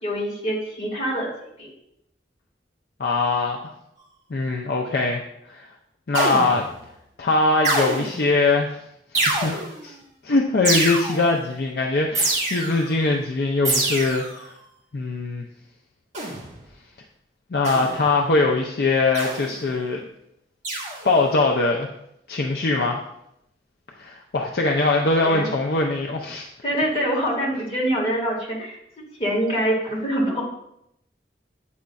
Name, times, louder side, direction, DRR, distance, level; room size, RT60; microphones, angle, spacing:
voice 1, 0.0-1.3 1.6-1.7 25.2-25.5 26.6-30.4, equal, 35° left, -4 dB, 2.0 m, -25 dB
voice 2, 3.0-3.7 4.3-5.2 5.5-5.7 6.1-6.7 7.2-8.8 9.2-9.9 10.2-14.5 14.9-15.4 17.5-20.1 21.0-21.9 22.3-23.0 24.0-26.5, left 3 dB, 60° left, 0 dB, 0.5 m, -22 dB
sound 1, 6.1-6.7 7.6-8.3 9.1-9.8 10.6-11.4 12.1-12.9 13.6-14.4 16.1-16.5 17.6-18.1 19.1-19.6 20.6-21.1, right 2 dB, 40° right, 1.9 m, -25 dB
8.5 x 5.1 x 2.3 m, 0.77 s
head